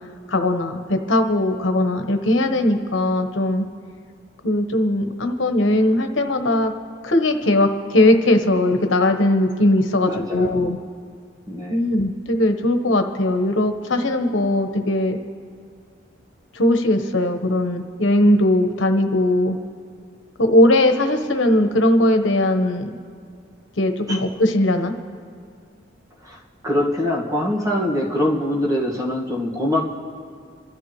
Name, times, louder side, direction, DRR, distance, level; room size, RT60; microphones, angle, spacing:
voice 1, 0.3-3.7 4.4-6.7 7.0-10.8 11.7-15.2 16.5-19.6 20.4-22.9 23.8-24.9, left 1 dB, 85° left, 6 dB, 1.1 m, -19 dB
voice 2, 10.1-10.6 11.5-11.8 24.1-24.2 26.2-29.8, left 1 dB, 20° right, -2 dB, 1.7 m, -23 dB
27.5 x 12.5 x 3.2 m, 2.1 s
head